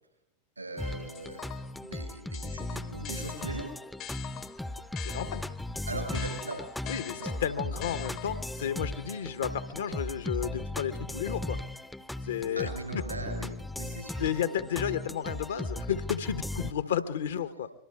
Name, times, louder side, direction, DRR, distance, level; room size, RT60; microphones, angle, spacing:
voice 1, 0.6-3.7 5.9-6.9 7.2-7.3 12.5-14.3, right 2 dB, 85° right, 2 dB, 7.2 m, -40 dB
sound 1, 0.8-16.7, left 1 dB, 5° left, 0.6 m, -37 dB
sound 2, 1.1-1.9 2.3-5.7 6.1-8.6, left 12 dB, 35° left, 0.8 m, -44 dB
voice 2, 5.0-5.4 6.9-11.6 12.2-12.7 14.2-17.7, left 9 dB, 65° left, 12 dB, 0.9 m, -32 dB
25.0 x 22.5 x 2.4 m, 0.95 s
figure-of-eight pair, 90°, 0 cm